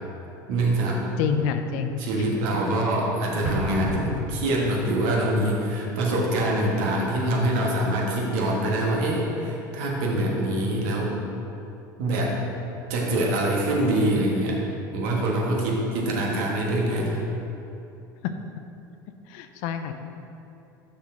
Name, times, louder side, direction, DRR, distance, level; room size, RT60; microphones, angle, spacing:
voice 1, 0.5-1.0 2.0-11.3 12.0-12.4 12.9-14.6 14.9-17.2, right 1 dB, 65° right, -2 dB, 1.4 m, -24 dB
voice 2, 1.2-2.3 18.2-18.3 19.3-19.9, left 7 dB, 65° left, 8 dB, 0.5 m, -28 dB
Explosion, 3.4-5.1, right 1 dB, 15° right, 1.6 m, -31 dB
6.3 x 6.1 x 3.8 m, 2.7 s
hypercardioid pair, 75°, 11 cm